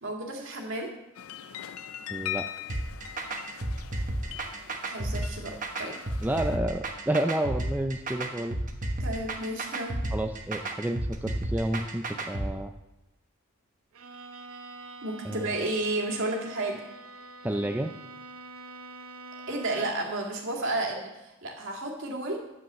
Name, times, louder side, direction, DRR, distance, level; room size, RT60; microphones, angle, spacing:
voice 1, 0.0-0.9 4.9-6.0 9.0-9.9 15.0-16.8 19.5-22.4, right 2 dB, 60° right, 1 dB, 2.2 m, -32 dB
sound 1, 1.1-6.6, left 11 dB, 80° left, 0.5 m, -41 dB
voice 2, 2.1-2.4 6.2-8.6 10.1-12.7 15.2-15.6 17.4-17.9, right 1 dB, 10° right, 5 dB, 0.4 m, -30 dB
sound 2, 2.7-12.5, right 1 dB, 35° right, 1.1 m, -32 dB
Bowed string instrument, 13.9-20.2, right 2 dB, 90° right, 0.9 m, -45 dB
9.6 x 6.2 x 7.4 m, 0.96 s
head